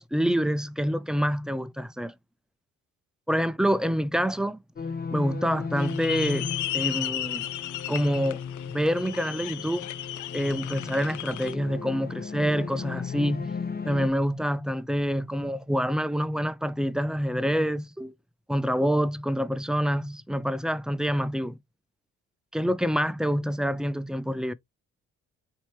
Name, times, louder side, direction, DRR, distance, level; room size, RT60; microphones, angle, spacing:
voice 1, 0.0-2.1 3.3-4.6 5.1-7.5 7.9-8.4 8.7-9.9 10.3-13.5 13.9-18.1 18.5-21.6 22.5-24.5, equal, ahead, 0.4 m, -27 dB
sound 1, 4.8-14.1, left 6 dB, 30° left, 0.8 m, -36 dB
sound 2, 5.8-11.5, left 12 dB, 80° left, 0.6 m, -34 dB
4.3 x 3.0 x 3.1 m
cardioid pair, 90°, 30 cm